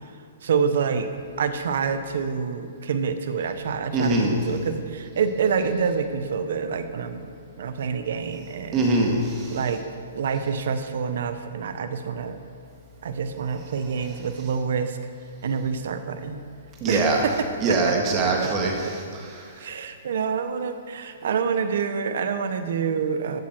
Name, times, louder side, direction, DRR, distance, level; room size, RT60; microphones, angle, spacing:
voice 1, 0.4-1.1 1.4-7.3 7.6-8.9 9.5-12.4 13.0-15.0 15.4-16.4 16.9-17.9 18.2-18.9 19.6-23.4, right 6 dB, 65° right, 9 dB, 0.8 m, -27 dB
voice 2, 3.9-4.4 8.7-9.6 16.8-17.2 17.6-19.5, right 2 dB, 25° right, 0 dB, 1.7 m, -23 dB
12.0 x 7.4 x 4.5 m, 2.4 s
hypercardioid pair, 145°, 0 cm